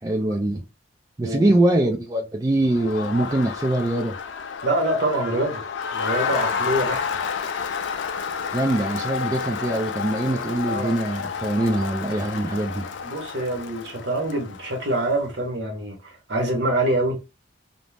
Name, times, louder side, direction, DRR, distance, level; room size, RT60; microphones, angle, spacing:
voice 1, 0.0-0.6 1.2-4.2 8.5-12.8, right 1 dB, 20° right, 0.3 m, -23 dB
voice 2, 1.2-1.6 4.6-5.6 5.9-7.0 10.7-10.9 13.0-17.2, right 1 dB, 60° right, 1.0 m, -25 dB
Crowd, 2.6-15.1, left 6 dB, 70° left, 0.4 m, -30 dB
2.6 x 2.0 x 3.2 m
head